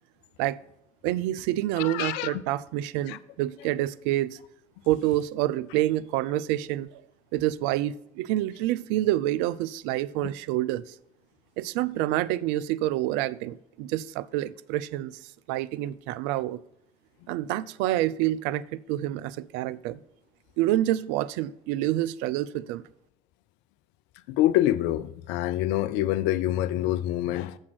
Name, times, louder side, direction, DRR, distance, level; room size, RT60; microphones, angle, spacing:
voice 1, 1.0-4.4 4.9-7.0 7.3-10.9 11.6-16.6 17.3-20.0 20.6-22.8, right 14 dB, 70° right, 0.4 m, -28 dB
voice 2, 1.8-2.4 3.1-3.2 24.3-27.6, left 13 dB, 70° left, 0.5 m, -26 dB
7.1 x 6.4 x 6.1 m
hypercardioid pair, 55°, 19 cm